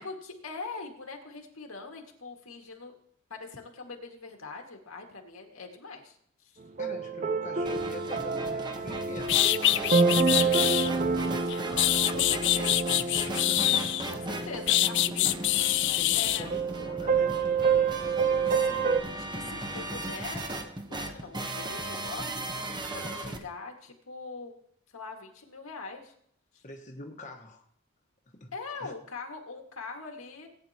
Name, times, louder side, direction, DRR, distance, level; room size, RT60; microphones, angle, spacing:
voice 1, 0.0-3.0 3.3-6.2 6.4-6.5 10.2-10.7 11.6-13.0 14.1-15.2 16.1-16.5 18.5-22.5 22.7-24.5 24.9-26.1 26.5-26.6 28.5-30.5, left 4 dB, 85° left, 2 dB, 2.0 m, -42 dB
voice 2, 6.8-9.4 9.9-11.3 13.3-13.7 14.0-14.4 15.1-15.3 16.0-17.4 26.6-27.6 28.4-28.5 28.8-28.9, left 2 dB, 35° left, 1 dB, 1.3 m, -44 dB
sound 1, 6.8-19.0, right 4 dB, 35° right, 0.6 m, -28 dB
sound 2, 7.7-23.4, right 2 dB, 20° right, 1.0 m, -38 dB
sound 3, 8.9-9.0 9.3-10.9 11.5-14.1 14.7-16.4, left 14 dB, 60° left, 0.4 m, -25 dB
18.5 x 9.2 x 2.9 m, 0.66 s
head